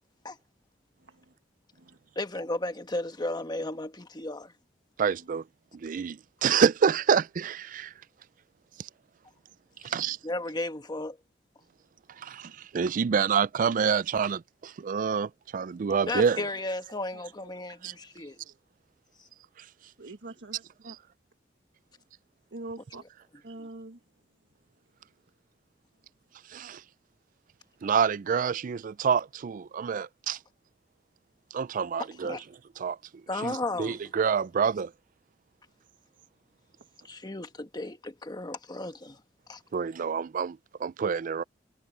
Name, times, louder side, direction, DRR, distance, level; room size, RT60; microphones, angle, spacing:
voice 1, 2.2-4.5 9.8-9.9 10.2-11.2 16.0-18.4 32.2-32.4 33.3-34.0 37.1-39.2 39.5-39.6, left 2 dB, 25° left, 1.2 m, -34 dB
voice 2, 5.0-5.4 5.7-7.9 8.8-8.9 9.8-10.2 12.2-16.5 17.8-17.9 20.9-21.0 26.5-26.8 27.8-30.4 31.5-32.4 32.8-33.0 33.4-34.9 39.7-41.4, right 6 dB, 45° right, 0.4 m, -27 dB
voice 3, 20.0-21.0 22.5-23.0 23.4-24.0, right 2 dB, 80° right, 1.7 m, -43 dB
head